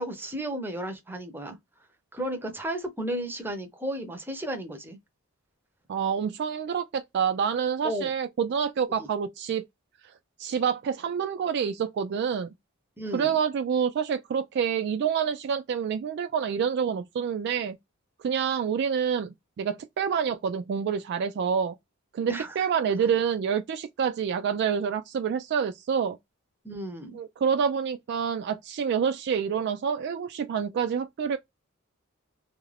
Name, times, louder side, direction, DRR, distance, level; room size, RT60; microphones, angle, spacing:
voice 1, 0.0-1.6 2.1-5.0 7.8-8.1 9.0-9.1 13.0-13.3 22.3-22.5 26.6-27.2, right 1 dB, 10° right, 0.6 m, -33 dB
voice 2, 5.9-9.6 10.4-12.5 13.1-17.8 18.2-21.7 22.1-26.2 27.1-31.4, right 7 dB, 55° right, 0.3 m, -27 dB
2.4 x 2.1 x 3.2 m
head